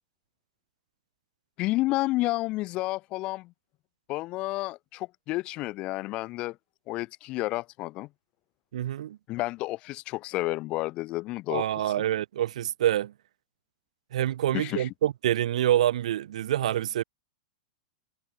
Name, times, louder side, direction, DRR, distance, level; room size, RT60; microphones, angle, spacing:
voice 1, 1.6-3.5 4.1-6.6 6.9-8.1 9.3-11.7 14.5-14.9, left 19 dB, 25° left, 0.5 m, -30 dB
voice 2, 8.7-9.2 11.5-13.1 14.1-17.0, right 12 dB, 65° right, 1.2 m, -26 dB
supercardioid pair, 170°, 4 cm